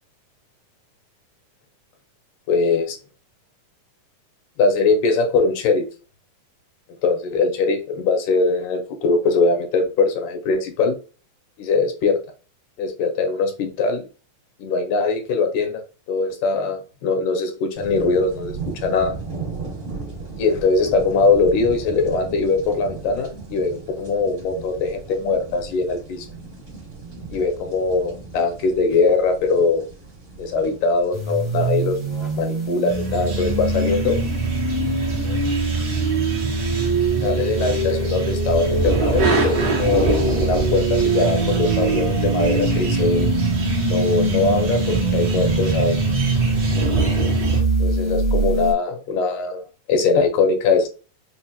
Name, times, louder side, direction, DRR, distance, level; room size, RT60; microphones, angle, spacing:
voice 1, 2.5-3.0 4.6-5.9 7.0-10.9 11.6-12.2 12.8-14.0 14.6-15.8 16.1-19.2 20.4-26.3 27.3-29.9 30.4-32.0 32.4-34.2 37.2-43.3 43.9-46.0 47.8-50.9, left 4 dB, 80° left, 5 dB, 2.4 m, -21 dB
sound 1, 17.7-34.0, right 4 dB, 45° right, 1.0 m, -37 dB
sound 2, 31.1-48.7, right 1 dB, 25° right, 0.6 m, -24 dB
sound 3, 32.9-47.6, right 6 dB, 75° right, 0.8 m, -23 dB
5.3 x 2.1 x 2.8 m, 0.34 s
omnidirectional pair, 3.8 m